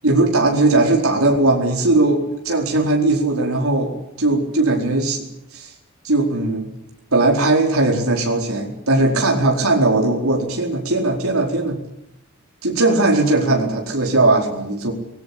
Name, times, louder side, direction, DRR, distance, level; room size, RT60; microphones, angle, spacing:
voice 1, 0.0-5.3 5.5-5.7 6.0-6.7 7.1-11.8 12.6-14.9, right 2 dB, 85° right, 1 dB, 4.6 m, -18 dB
23.5 x 20.5 x 8.7 m, 0.85 s
head